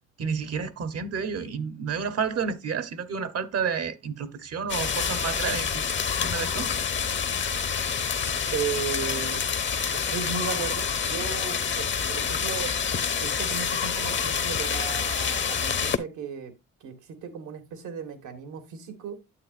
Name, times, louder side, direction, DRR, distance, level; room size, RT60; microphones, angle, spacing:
voice 1, 0.2-5.9 6.2-6.7, right 6 dB, 55° right, 1.0 m, -30 dB
sound 1, 4.7-16.0, left 6 dB, 40° left, 0.9 m, -27 dB
voice 2, 8.5-9.4 10.1-12.8 13.2-16.5 16.8-19.2, right 7 dB, 80° right, 1.8 m, -35 dB
9.7 x 8.0 x 2.5 m
cardioid pair, 90°, 30 cm